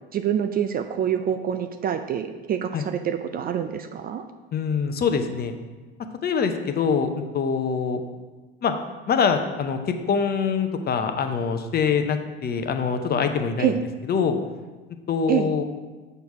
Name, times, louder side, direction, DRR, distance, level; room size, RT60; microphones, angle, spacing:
voice 1, 0.1-4.3 13.6-13.8 15.3-15.5, right 9 dB, 30° right, 8 dB, 0.4 m, -26 dB
voice 2, 4.5-5.5 6.2-8.0 8.6-8.7 9.1-9.8 10.1-13.8 14.1-14.4 15.1-15.6, left 6 dB, 30° left, 7 dB, 0.7 m, -24 dB
6.7 x 4.6 x 4.8 m, 1.3 s
hypercardioid pair, 75°, 30 cm